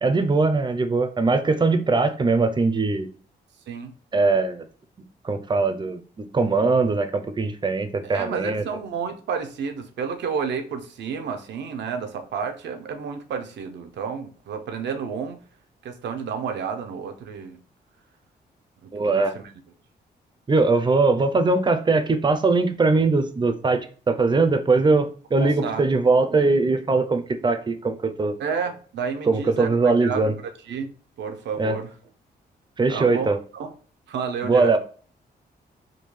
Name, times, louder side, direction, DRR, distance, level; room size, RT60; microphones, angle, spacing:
voice 1, 0.0-3.1 4.1-4.7 5.2-8.6 18.9-19.4 20.5-28.3 29.3-30.3 31.6-31.8 32.8-33.4 34.4-34.8, right 3 dB, 25° right, 0.5 m, -21 dB
voice 2, 8.0-15.4 15.8-17.6 18.8-19.5 25.4-25.8 28.4-30.3 30.7-30.9 31.2-31.9 32.9-33.7 34.1-34.7, right 6 dB, 80° right, 0.6 m, -31 dB
3.6 x 2.3 x 3.2 m
cardioid pair, 80°, 18 cm